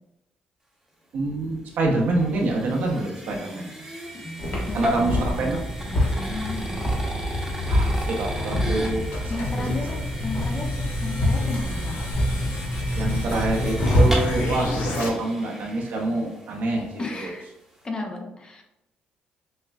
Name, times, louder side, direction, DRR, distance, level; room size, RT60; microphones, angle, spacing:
voice 1, 1.1-3.6 4.7-5.7 7.7-9.3 13.0-16.9 17.2-17.3, right 2 dB, 70° right, 0 dB, 0.8 m, -26 dB
sound 1, 1.3-16.5, equal, 10° right, 1.0 m, -36 dB
voice 2, 4.1-5.1 5.9-6.8 9.3-10.7 11.0-12.0 17.0-17.5 17.8-18.6, left 2 dB, 30° left, 2 dB, 0.7 m, -34 dB
sound 2, 4.4-14.7, equal, 60° left, 1.4 m, -26 dB
sound 3, 8.8-15.1, left 2 dB, 85° left, 0.8 m, -30 dB
6.4 x 2.2 x 2.4 m, 0.91 s
cardioid pair, 90°, 3 cm